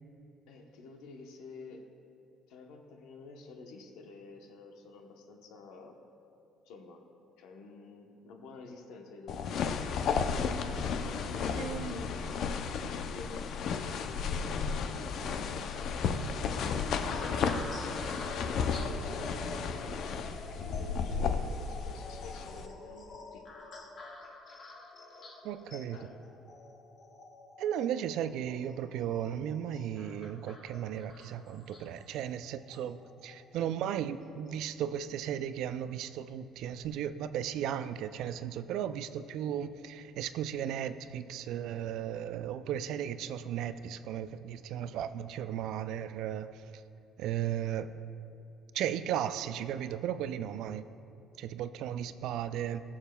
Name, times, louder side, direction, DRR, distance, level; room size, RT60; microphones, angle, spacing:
voice 1, 0.5-1.8 2.5-6.0 6.7-7.0 7.4-9.9 11.0-15.7 16.4-23.5 25.9-26.2, left 3 dB, 85° left, 3 dB, 0.9 m, -49 dB
sound 1, 9.3-22.7, left 5 dB, 55° left, 0.5 m, -33 dB
voice 2, 11.6-12.0 25.4-26.0 27.6-46.5 47.2-47.9 48.7-50.9 51.4-52.8, right 10 dB, 70° right, 12 dB, 0.3 m, -35 dB
sound 2, 17.1-33.6 34.2-34.5, left 3 dB, 40° left, 1.1 m, -47 dB
19.5 x 7.1 x 2.3 m, 2.7 s
cardioid pair, 140°, 0 cm